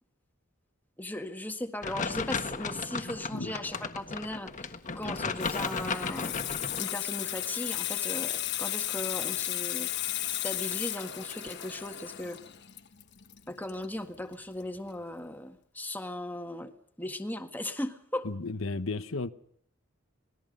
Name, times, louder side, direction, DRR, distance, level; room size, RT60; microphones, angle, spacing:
voice 1, 1.0-6.4 6.8-9.9 10.4-12.4 13.5-16.7 17.0-18.3, left 1 dB, 10° left, 1.8 m, -37 dB
sound 1, 1.8-6.8, left 4 dB, 40° left, 1.5 m, -35 dB
Water tap faucet / Sink (filling or washing), 5.0-14.3 14.6-14.9, left 13 dB, 60° left, 1.3 m, -34 dB
voice 2, 18.2-19.3, left 3 dB, 80° left, 1.1 m, -33 dB
26.5 x 19.5 x 5.4 m
head